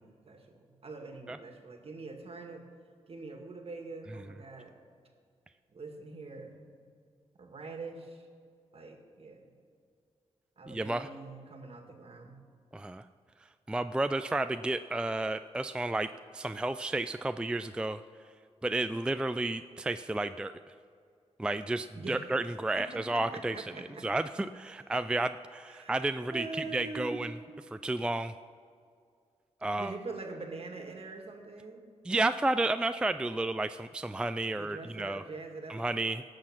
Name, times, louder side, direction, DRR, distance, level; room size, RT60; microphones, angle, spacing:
voice 1, 0.0-2.7 3.1-4.8 5.7-6.6 7.4-8.3 8.7-9.5 10.6-12.4 21.9-22.3 22.8-24.1 25.7-26.0 26.3-27.2 29.7-31.8 34.4-35.8, right 3 dB, 55° right, 3 dB, 1.8 m, -44 dB
voice 2, 10.7-11.1 12.7-13.1 13.7-18.0 18.6-20.5 21.4-23.6 24.0-26.5 26.7-27.3 27.7-28.3 29.6-29.9 32.1-35.2 35.7-36.2, right 2 dB, 10° right, 11 dB, 0.3 m, -31 dB
17.5 x 6.3 x 5.9 m, 2.2 s
cardioid pair, 75°, 12 cm